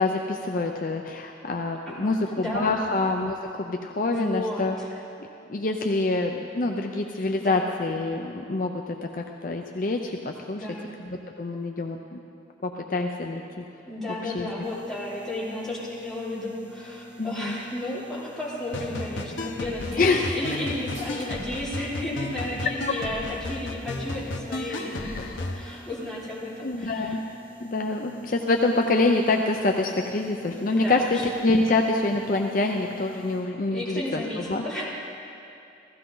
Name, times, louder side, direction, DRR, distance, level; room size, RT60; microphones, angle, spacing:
voice 1, 0.0-4.8 5.2-8.8 9.2-10.7 11.0-12.2 12.6-13.6 14.2-14.5 17.2-17.6 20.0-20.4 24.7-25.5 26.6-27.2 27.6-34.6, left 2 dB, 45° left, 2 dB, 0.5 m, -26 dB
voice 2, 1.9-2.9 4.1-4.9 7.4-7.6 10.5-10.9 13.9-27.1 30.7-31.2 33.7-34.9, left 1 dB, ahead, -10 dB, 3.3 m, -33 dB
sound 1, 14.6-33.4, equal, 25° right, 2.8 m, -46 dB
sound 2, 18.7-25.6, left 2 dB, 85° left, 0.9 m, -34 dB
sound 3, 19.9-22.6, equal, 70° right, 4.2 m, -46 dB
15.5 x 15.0 x 3.9 m, 2.6 s
head